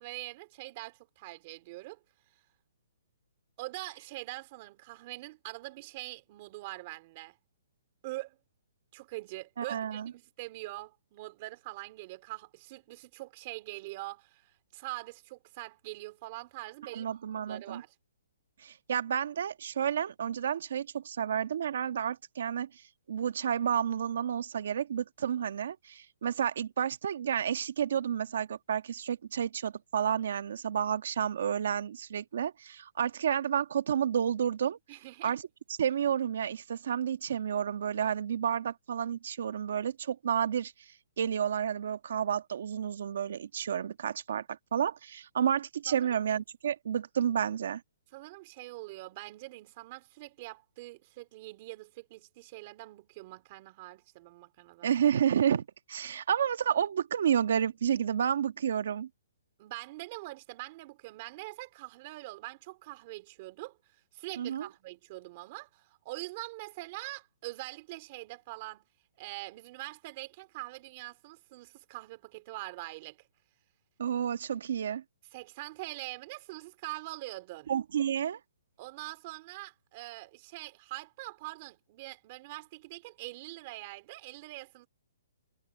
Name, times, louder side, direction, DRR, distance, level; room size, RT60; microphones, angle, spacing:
voice 1, 0.0-2.0 3.6-7.4 8.0-8.4 8.9-17.1 17.5-18.0 34.9-35.3 45.9-46.2 48.1-54.9 59.6-63.8 64.1-68.8 69.2-73.3 75.3-77.7 78.8-84.9, right 20 dB, 25° right, 3.6 m, -43 dB
voice 2, 9.6-10.1 16.9-17.8 18.6-22.7 23.1-34.8 35.2-35.4 35.8-40.7 41.2-47.8 54.8-59.1 64.4-64.7 74.0-75.0 77.7-78.4, right 8 dB, 55° right, 1.7 m, -30 dB
hypercardioid pair, 175°, 0 cm